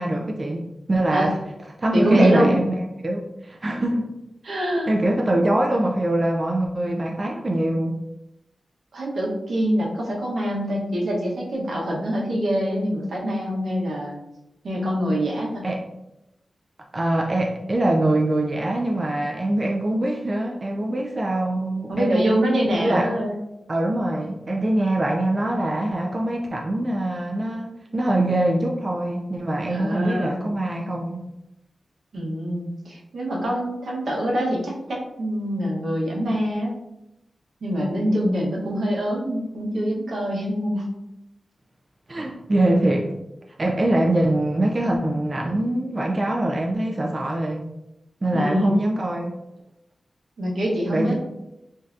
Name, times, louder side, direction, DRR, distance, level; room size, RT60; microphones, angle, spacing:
voice 1, 0.0-1.4 1.8-4.1 4.9-8.0 15.6-15.8 16.9-23.1 23.7-31.3 42.1-43.1 43.6-47.6 48.2-49.3 50.9-51.1, right 1 dB, 30° right, 0 dB, 0.3 m, -23 dB
voice 2, 1.9-2.6 4.4-4.9 8.9-14.2 14.6-15.7 21.9-23.4 29.7-30.4 32.1-36.7 37.6-40.9 48.3-48.8 50.4-51.1, equal, 75° right, -3 dB, 0.8 m, -24 dB
3.3 x 2.6 x 2.4 m, 0.89 s
wide cardioid pair, 120°, 0 cm